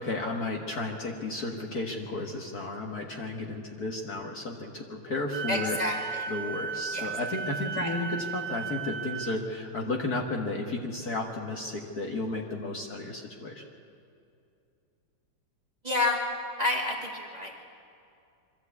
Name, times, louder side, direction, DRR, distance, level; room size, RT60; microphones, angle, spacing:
voice 1, 0.0-5.8 6.3-13.6, left 2 dB, 45° left, 1 dB, 1.8 m, -33 dB
Wind instrument woodwind instrument, 5.3-9.4, right 5 dB, 60° right, 2.1 m, -35 dB
voice 2, 5.5-6.2 6.9-7.1 7.8-7.9 15.8-16.2 16.6-17.5, left 2 dB, 20° right, -1 dB, 2.0 m, -29 dB
23.0 x 14.0 x 8.4 m, 2.5 s
omnidirectional pair, 2.4 m